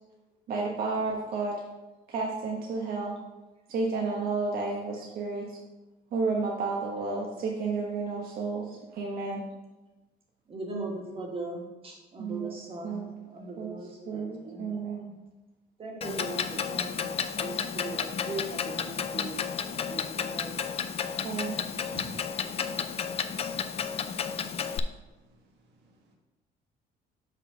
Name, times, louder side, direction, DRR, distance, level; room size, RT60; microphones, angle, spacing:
voice 1, 0.5-1.6 2.1-3.1 3.7-5.6 6.1-9.4 12.2-12.5 12.8-13.2 13.6-13.8 14.1-15.1 17.2-17.4 20.2-20.3 21.2-21.6, right 4 dB, 60° right, -2 dB, 1.0 m, -32 dB
voice 2, 10.5-14.9 15.8-17.1 17.4-19.4 19.7-20.1 20.3-20.6 21.8-22.1, right 2 dB, 35° right, 0 dB, 1.7 m, -39 dB
Clock, 16.0-24.8, left 7 dB, 35° left, 0.4 m, -32 dB
voice 3, 25.3-26.0, right 1 dB, 80° right, 2 dB, 1.4 m, -64 dB
5.6 x 3.9 x 6.0 m, 1.1 s
cardioid pair, 110°, 17 cm